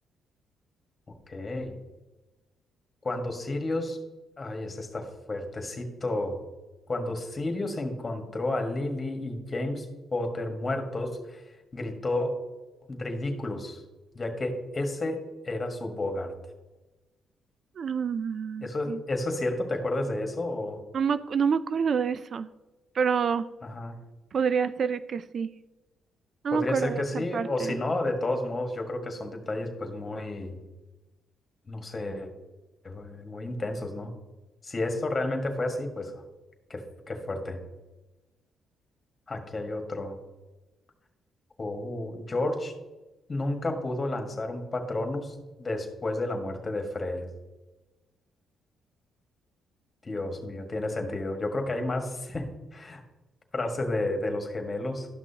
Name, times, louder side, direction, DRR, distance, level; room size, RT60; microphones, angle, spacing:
voice 1, 1.3-1.7 3.0-4.0 4.4-6.4 6.9-11.4 11.7-12.3 12.9-13.8 14.1-15.2 15.4-16.3 18.6-20.8 23.6-23.9 26.5-30.6 31.7-32.3 32.8-34.1 34.6-36.2 36.7-37.6 39.3-40.1 41.6-42.7 43.3-47.3 50.0-52.5 52.7-53.0 53.5-55.1, left 2 dB, 30° left, 4 dB, 1.6 m, -31 dB
voice 2, 17.8-19.0 20.9-22.5 22.9-23.5 24.3-25.5 26.4-27.8, right 6 dB, 50° right, 14 dB, 0.3 m, -27 dB
12.0 x 6.1 x 2.9 m, 1.1 s
cardioid pair, 90°, 0 cm